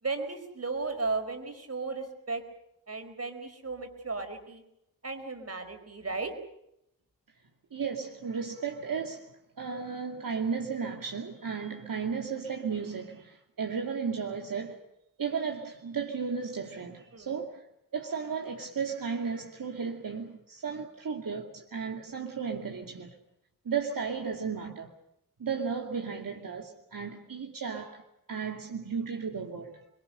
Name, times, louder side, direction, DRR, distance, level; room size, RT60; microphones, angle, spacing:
voice 1, 0.0-2.4 2.9-4.6 5.0-6.3 11.9-12.1 17.1-17.4, right 3 dB, 45° right, 4.9 m, -35 dB
voice 2, 7.7-9.3 9.6-14.8 15.2-17.6 17.9-23.1 23.6-24.9 25.4-28.0 28.3-29.8, right 6 dB, 70° right, 2.7 m, -34 dB
29.5 x 22.5 x 6.8 m
wide cardioid pair, 80°, 35 cm